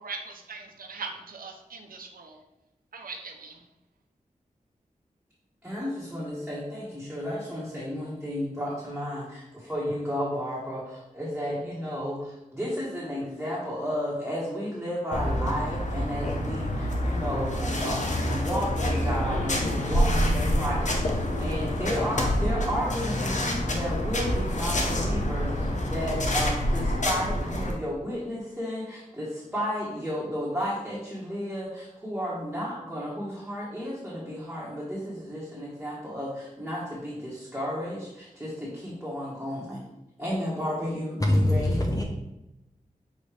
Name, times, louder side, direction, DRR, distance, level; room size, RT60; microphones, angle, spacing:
voice 1, 0.0-2.4 2.9-3.6, right 4 dB, 80° right, 3 dB, 0.6 m, -40 dB
voice 2, 5.6-39.8 40.2-41.8, equal, 5° right, -8 dB, 1.4 m, -33 dB
sound 1, 15.1-27.7, left 1 dB, 55° left, 0.8 m, -27 dB
voice 3, 41.2-42.0, left 1 dB, 25° left, 1 dB, 0.6 m, -23 dB
6.3 x 2.6 x 3.2 m, 0.92 s
cardioid pair, 50°, 15 cm